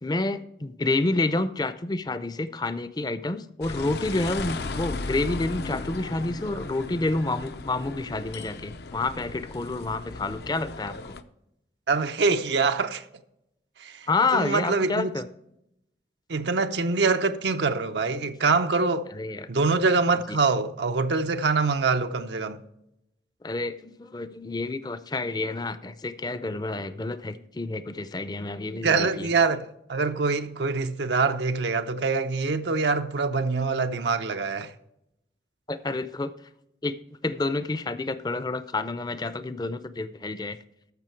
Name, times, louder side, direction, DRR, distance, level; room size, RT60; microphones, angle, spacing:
voice 1, 0.0-11.2 14.1-15.3 19.1-19.5 23.4-29.3 35.7-36.3 36.8-36.9 37.2-40.6, left 2 dB, 20° left, 0.5 m, -29 dB
sound 1, 3.6-11.2, left 3 dB, 65° left, 0.6 m, -36 dB
voice 2, 11.9-13.0 13.8-15.1 16.3-19.1 19.5-22.6 28.8-34.7, right 4 dB, 75° right, 0.7 m, -24 dB
13.5 x 6.3 x 4.5 m
head